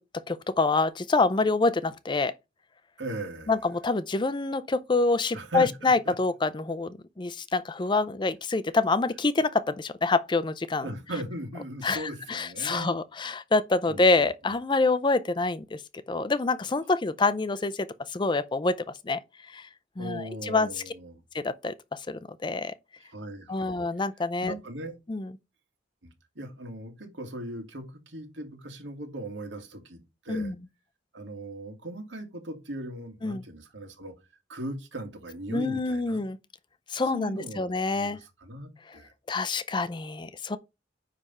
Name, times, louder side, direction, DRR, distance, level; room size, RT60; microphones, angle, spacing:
voice 1, 0.3-2.3 3.5-10.9 11.8-15.8 16.1-19.2 19.5-19.7 20.0-20.7 21.3-22.7 23.5-24.5 25.1-25.3 30.3-30.5 33.2-33.4 35.5-36.4 36.9-38.2 39.3-40.6, left 3 dB, 25° left, 0.5 m, -26 dB
voice 2, 3.0-3.5 5.3-6.1 10.8-12.9 13.9-14.2 20.0-21.2 23.0-23.8 24.4-24.9 26.0-30.5 31.1-34.1 34.5-36.2 37.1-39.1, right 1 dB, 90° right, 2.2 m, -39 dB
9.7 x 3.5 x 5.5 m
head